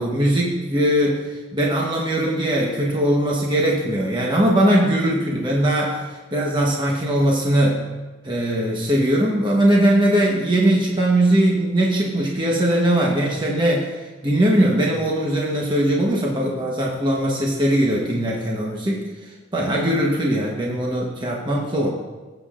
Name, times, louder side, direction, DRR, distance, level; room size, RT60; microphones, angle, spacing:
voice 1, 0.0-7.8 8.2-13.9 14.2-19.1 19.5-21.9, right 1 dB, 25° right, -2 dB, 1.1 m, -20 dB
17.5 x 8.1 x 2.5 m, 1.3 s
head